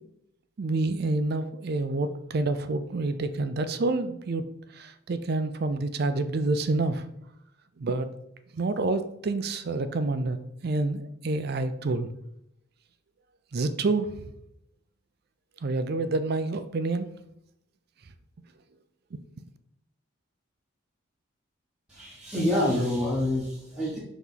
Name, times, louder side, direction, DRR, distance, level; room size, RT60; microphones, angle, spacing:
voice 1, 0.6-4.4 4.8-7.0 7.8-8.1 8.5-10.4 10.6-12.1 13.5-14.1 15.6-17.1 19.1-19.2, right 3 dB, 45° right, 11 dB, 0.4 m, -28 dB
voice 2, 21.9-24.0, left 1 dB, 5° right, -8 dB, 1.0 m, -27 dB
5.7 x 3.1 x 5.6 m, 0.80 s
head